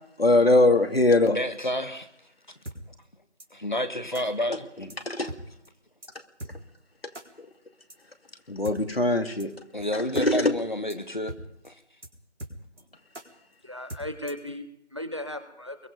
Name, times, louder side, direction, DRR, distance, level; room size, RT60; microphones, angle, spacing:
voice 1, 0.2-1.4 5.1-5.3 8.5-9.5 10.2-10.5, left 2 dB, 60° left, 6 dB, 2.5 m, -21 dB
voice 2, 1.2-2.1 3.5-4.7 9.7-11.3 11.6-11.7, left 1 dB, 45° left, 9 dB, 1.5 m, -29 dB
sound 1, 2.7-2.8 3.4-3.5 4.1-4.3 4.9-5.0 5.3-5.4 5.7-5.8 6.0-6.1 6.4-6.5 7.1-7.3 7.9-8.0 8.6-8.8 9.4-9.5 9.8-9.9 10.1-10.3 10.5-10.6 10.9-11.0 11.3-11.4 11.7-11.8 12.0-12.1 12.4-12.8 13.1-13.3 13.9-14.5, right 1 dB, 85° right, 4.0 m, -39 dB
voice 3, 13.6-15.8, left 1 dB, 25° right, 10 dB, 1.2 m, -36 dB
24.5 x 22.5 x 5.2 m, 0.75 s
figure-of-eight pair, 175°, 34 cm